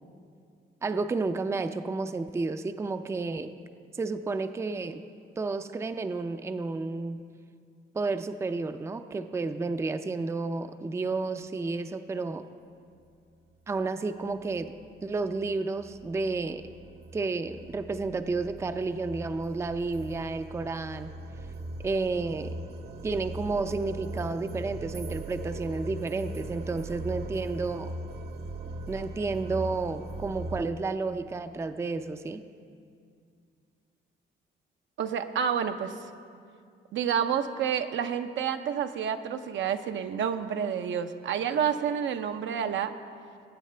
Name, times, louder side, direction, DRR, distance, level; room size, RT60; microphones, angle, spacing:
voice 1, 0.8-3.5 3.9-5.0 5.4-7.2 7.9-12.4 13.7-14.7 15.0-16.7 17.1-21.1 21.8-22.5 23.0-27.9 28.9-32.4, right 3 dB, 15° right, 9 dB, 0.4 m, -31 dB
sound 1, 13.7-13.8 14.3-30.7, right 1 dB, 55° right, 0.9 m, -40 dB
voice 2, 35.0-36.1 36.9-42.9, right 8 dB, 70° right, 8 dB, 0.6 m, -29 dB
19.0 x 8.5 x 3.3 m, 2.3 s
cardioid pair, 90°, 20 cm